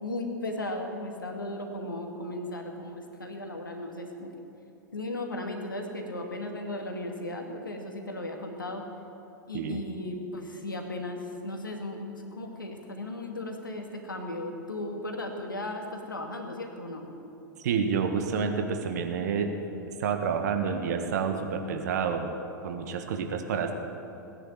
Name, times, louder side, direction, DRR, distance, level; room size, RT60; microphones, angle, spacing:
voice 1, 0.0-4.3 4.9-8.8 9.5-17.1, left 1 dB, 80° left, 3 dB, 2.2 m, -36 dB
voice 2, 17.6-19.5 20.0-22.4 22.6-23.7, right 6 dB, 55° right, 5 dB, 1.7 m, -29 dB
18.0 x 10.0 x 7.7 m, 2.9 s
figure-of-eight pair, 95°, 11 cm